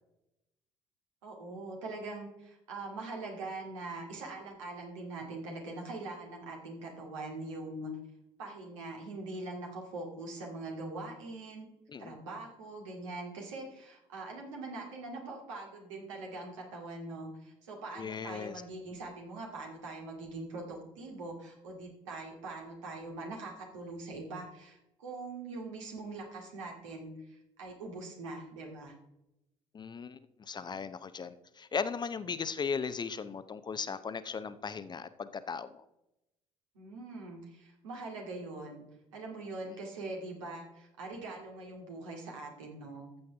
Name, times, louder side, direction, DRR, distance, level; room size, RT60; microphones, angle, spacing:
voice 1, 1.2-7.9 8.4-11.7 12.0-28.9 36.7-38.9 39.1-43.1, right 2 dB, 70° right, 0 dB, 2.2 m, -42 dB
voice 2, 18.0-18.6 29.7-35.8, left 5 dB, 25° left, 12 dB, 0.7 m, -37 dB
14.0 x 7.8 x 3.4 m, 0.89 s
figure-of-eight pair, 55°, 16 cm